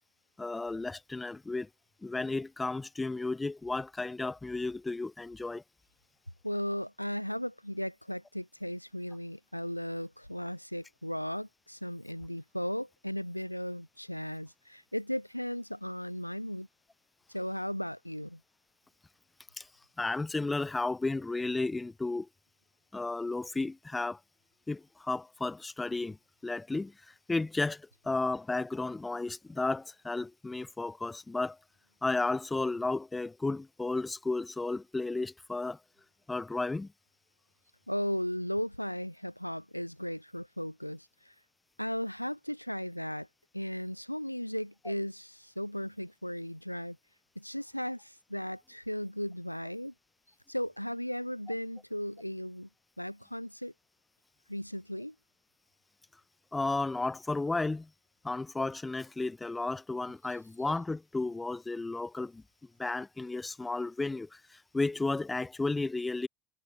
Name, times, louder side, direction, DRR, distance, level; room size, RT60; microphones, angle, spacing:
voice 1, 0.4-1.7 2.0-5.6 19.6-19.7 20.0-22.3 22.9-24.2 24.7-26.2 26.4-31.6 32.0-35.8 36.3-36.9 56.5-57.9 58.2-62.4 62.8-66.3, left 3 dB, 10° left, 3.5 m, -33 dB
voice 2, 6.4-16.7 17.3-18.4 37.9-41.3 41.8-43.3 43.5-47.0 47.3-49.9 50.5-52.7 53.0-53.7 54.5-55.1, equal, 90° left, 1.6 m, -36 dB
figure-of-eight pair, 75°, 0 cm